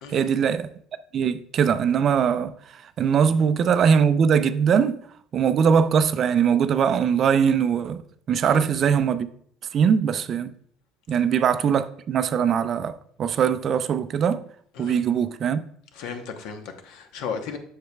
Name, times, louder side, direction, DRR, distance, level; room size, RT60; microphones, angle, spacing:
voice 1, 0.1-0.7 1.1-5.0 5.3-8.0 8.3-9.3 9.7-10.5 11.1-14.4 14.8-15.6, right 7 dB, 40° right, 0.4 m, -21 dB
voice 2, 15.9-17.6, left 6 dB, 75° left, 0.9 m, -35 dB
7.7 x 6.5 x 2.3 m
cardioid pair, 140°, 0 cm